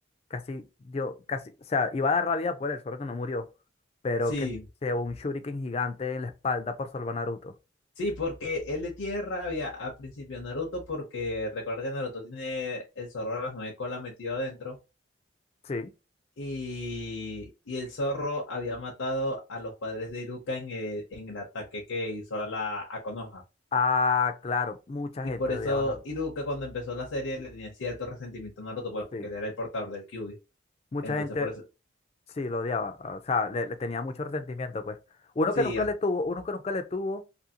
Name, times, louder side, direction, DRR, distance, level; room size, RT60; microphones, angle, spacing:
voice 1, 0.3-1.4 1.7-3.5 4.0-4.5 4.8-7.5 15.6-15.9 23.7-25.9 29.1-29.3 30.9-31.5 32.4-35.0 35.4-37.2, left 3 dB, 30° left, 0.3 m, -29 dB
voice 2, 4.3-4.6 8.0-14.8 16.4-23.4 25.2-30.4 31.0-31.5 35.6-35.9, left 2 dB, 85° left, 0.7 m, -33 dB
2.7 x 2.6 x 2.7 m
head